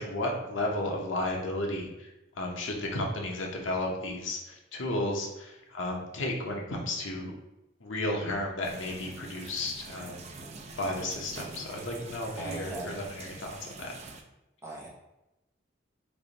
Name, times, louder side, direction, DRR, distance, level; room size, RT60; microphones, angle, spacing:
voice 1, 0.0-2.1 2.4-7.3 7.8-10.3 10.8-13.9, left 1 dB, 80° left, 0 dB, 0.8 m, -33 dB
sound 1, 8.6-14.2, right 3 dB, 35° right, 0.3 m, -45 dB
voice 2, 12.3-13.0 14.6-14.9, right 2 dB, 15° right, -4 dB, 0.8 m, -38 dB
3.3 x 2.5 x 4.0 m, 0.95 s
head